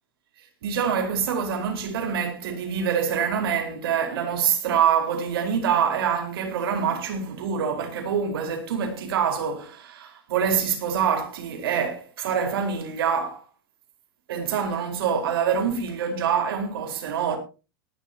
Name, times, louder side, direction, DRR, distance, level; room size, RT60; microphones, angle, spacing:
voice 1, 0.6-13.4 14.3-17.4, right 7 dB, 75° right, 4.8 m, -25 dB
18.5 x 11.5 x 2.9 m
supercardioid pair, 140°, 12 cm